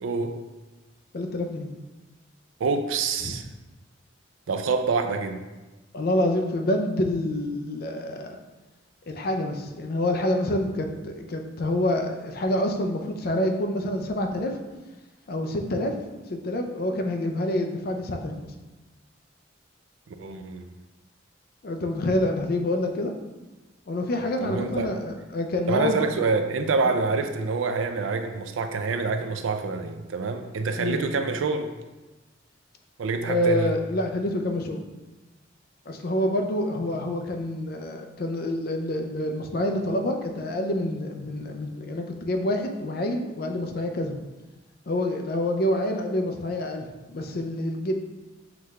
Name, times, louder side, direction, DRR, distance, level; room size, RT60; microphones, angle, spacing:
voice 1, 0.0-0.3 2.6-3.4 4.5-5.4 20.1-20.7 24.4-24.9 25.7-31.7 33.0-33.7, right 4 dB, 85° right, 7 dB, 0.4 m, -26 dB
voice 2, 1.1-1.7 3.2-3.3 5.9-8.4 9.1-14.5 15.3-15.9 16.3-18.5 21.6-23.1 23.9-26.1 30.8-31.0 33.2-34.8 35.9-44.1 44.9-47.9, left 1 dB, 50° left, 4 dB, 0.5 m, -27 dB
5.9 x 2.4 x 3.2 m, 1.1 s
head